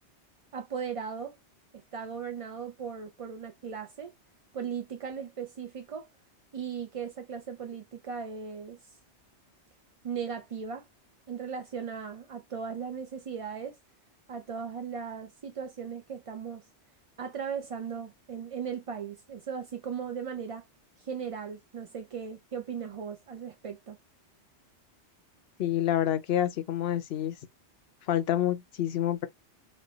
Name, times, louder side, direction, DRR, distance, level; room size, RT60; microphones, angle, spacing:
voice 1, 0.5-1.4 1.7-4.1 4.5-6.1 6.5-8.9 10.0-10.9 11.3-13.8 14.3-16.7 17.2-20.6 21.0-24.0, right 6 dB, 45° right, 0.4 m, -37 dB
voice 2, 25.6-27.3 28.1-29.3, left 11 dB, 70° left, 0.8 m, -28 dB
3.2 x 2.2 x 3.8 m
omnidirectional pair, 1.2 m